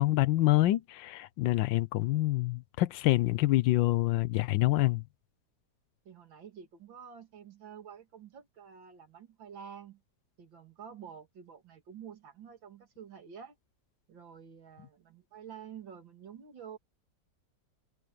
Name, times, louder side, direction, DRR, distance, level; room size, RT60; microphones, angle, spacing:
voice 1, 0.0-5.0, left 16 dB, 90° left, 1.4 m, -26 dB
voice 2, 6.0-10.0 10.4-13.6 14.1-16.8, right 7 dB, 85° right, 2.9 m, -49 dB
omnidirectional pair, 2.0 m